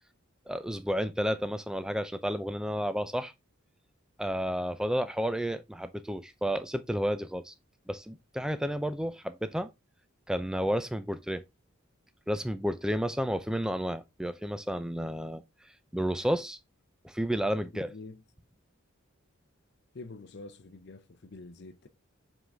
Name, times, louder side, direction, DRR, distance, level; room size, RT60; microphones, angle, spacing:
voice 1, 0.5-3.3 4.2-7.5 7.9-9.7 10.3-11.4 12.3-15.4 15.9-16.6 17.0-17.9, equal, 5° right, 0.4 m, -31 dB
voice 2, 17.7-18.2 19.9-21.9, left 3 dB, 50° left, 0.6 m, -46 dB
7.3 x 3.9 x 3.3 m
head